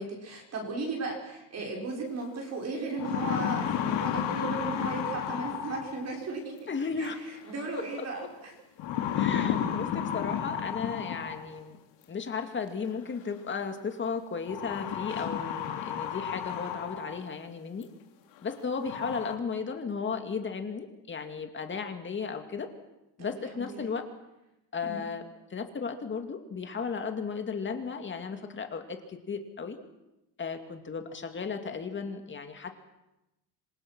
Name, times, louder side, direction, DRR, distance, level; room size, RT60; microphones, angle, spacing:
voice 1, 0.0-6.6 7.0-7.1 7.5-8.5 23.2-23.9 24.8-25.0, right 3 dB, 35° right, 0 dB, 6.4 m, -36 dB
sound 1, 2.2-2.3 2.8-6.2 7.6-8.0 8.8-11.6 12.8-12.9 14.5-17.3 17.8-17.9 18.5-18.6 18.8-19.3, left 9 dB, 70° left, 3.3 m, -32 dB
voice 2, 6.7-7.2 9.2-11.8 12.1-17.9 18.4-22.7 23.2-24.0 24.7-25.2 25.5-29.8 30.4-32.8, left 5 dB, 25° left, 6 dB, 2.4 m, -35 dB
27.0 x 25.5 x 6.2 m, 0.92 s
cardioid pair, 165°, 46 cm